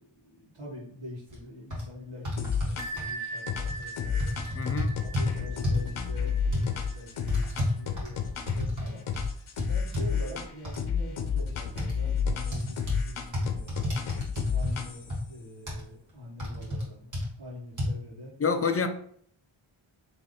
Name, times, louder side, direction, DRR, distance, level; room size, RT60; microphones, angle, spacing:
voice 1, 0.0-4.4 5.0-9.0 9.6-14.0 14.5-17.1 17.4-18.3, left 1 dB, 55° right, 1.8 m, -44 dB
sound 1, 1.3-1.4 1.7-1.8 2.3-3.1 3.7-3.8 4.2-5.3 5.6-5.9 6.5-6.7 7.3-8.9 9.1-9.3 9.6-10.1 10.6-10.8 11.8-11.9 12.5-13.0 13.3-14.8 15.1-15.2 15.7-15.8 16.4-16.8 17.1-17.3 17.8-17.9, left 1 dB, 35° right, 1.7 m, -30 dB
sound 2, 2.4-3.1 3.5-8.7 9.1-10.5 10.8-15.2, left 6 dB, 75° left, 0.7 m, -31 dB
Bell, 2.8-8.2, right 2 dB, 80° right, 0.7 m, -41 dB
voice 2, 4.5-5.0 18.4-18.9, left 5 dB, 30° left, 0.5 m, -27 dB
3.4 x 3.3 x 3.9 m
wide cardioid pair, 90°, 49 cm